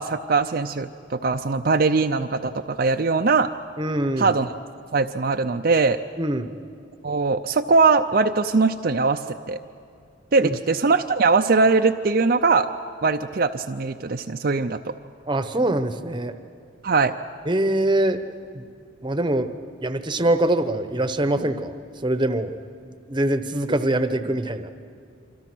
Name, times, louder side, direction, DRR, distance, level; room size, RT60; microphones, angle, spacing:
voice 1, 0.0-3.5 4.2-4.5 4.9-6.0 7.0-9.2 9.5-9.6 10.3-12.7 13.0-14.9 16.8-17.1, right 4 dB, 50° right, 5 dB, 0.5 m, -21 dB
voice 2, 3.8-4.3 6.2-6.5 10.4-10.6 15.3-16.3 17.5-18.2 18.5-18.6 19.0-19.5 19.8-21.7 22.0-22.6 23.1-24.7, right 1 dB, 25° right, 10 dB, 0.9 m, -23 dB
27.0 x 25.5 x 6.2 m, 2.4 s
head